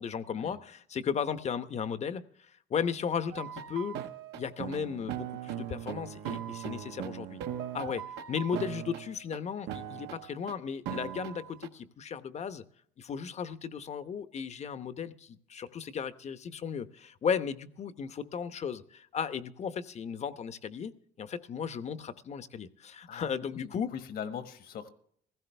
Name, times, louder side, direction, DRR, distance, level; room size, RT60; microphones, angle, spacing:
voice 1, 0.0-4.0 4.3-7.4 7.7-12.6 13.0-23.9, left 7 dB, 40° left, 0.9 m, -35 dB
sound 1, 3.3-9.4 9.7-10.5 10.9-11.7, right 10 dB, 90° right, 1.3 m, -39 dB
voice 2, 23.1-24.9, left 8 dB, 65° left, 1.5 m, -41 dB
16.5 x 15.5 x 3.4 m
cardioid pair, 110°, 17 cm